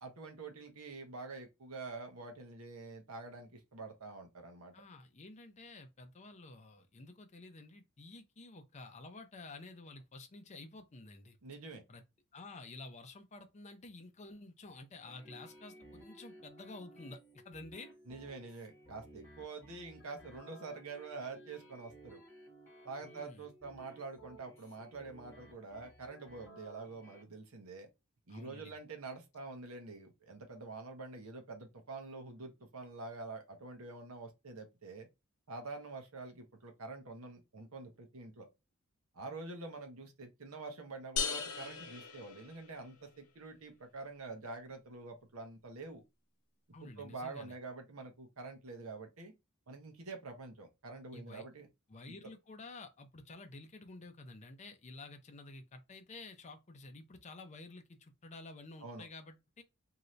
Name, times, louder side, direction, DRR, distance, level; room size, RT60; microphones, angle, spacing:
voice 1, 0.0-4.7 11.4-11.8 18.1-22.2 22.8-27.9 28.3-35.1 35.5-38.5 39.1-46.0 46.8-49.3 49.7-51.7 52.1-52.2 58.8-59.1, right 3 dB, 75° right, 0.9 m, -46 dB
voice 2, 4.7-11.4 11.9-12.0 12.3-17.9 23.0-23.5 28.3-28.7 46.7-47.5 51.1-51.4 51.9-59.6, left 3 dB, 30° left, 0.5 m, -51 dB
sound 1, 15.1-27.2, right 1 dB, 10° left, 1.2 m, -57 dB
sound 2, 41.2-43.0, left 6 dB, 85° left, 0.7 m, -38 dB
2.8 x 2.6 x 3.1 m
head